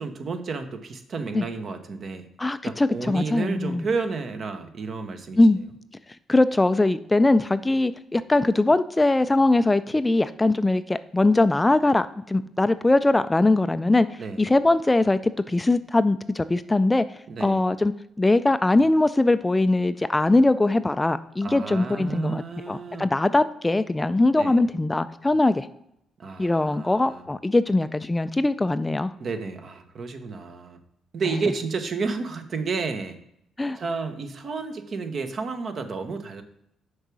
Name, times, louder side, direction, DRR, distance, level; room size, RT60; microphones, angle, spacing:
voice 1, 0.0-2.3 2.6-5.6 14.2-14.5 17.3-17.7 21.4-23.1 24.4-24.6 26.2-27.2 29.2-30.8 31.1-33.2 33.8-36.4, right 4 dB, 50° right, 8 dB, 1.0 m, -31 dB
voice 2, 2.4-3.9 5.4-5.6 6.3-17.1 17.4-17.9 18.2-25.7 26.4-29.1 33.6-33.8, left 2 dB, 15° left, 13 dB, 0.3 m, -21 dB
6.5 x 4.7 x 6.1 m, 0.77 s
cardioid pair, 90°, 0 cm